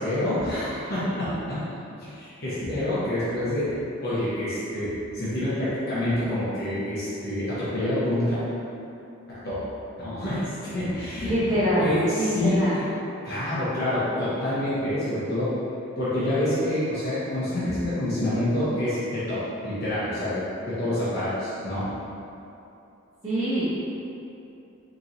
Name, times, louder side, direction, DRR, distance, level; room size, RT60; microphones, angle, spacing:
voice 1, 0.0-1.6 2.0-3.7 4.0-8.3 9.3-9.6 10.0-11.3 11.8-12.8 13.2-15.5 16.0-21.8, left 1 dB, 55° left, -12 dB, 1.0 m, -27 dB
voice 2, 11.2-12.8 23.2-23.8, equal, 20° right, -15 dB, 0.9 m, -24 dB
4.4 x 3.0 x 2.6 m, 2.8 s
head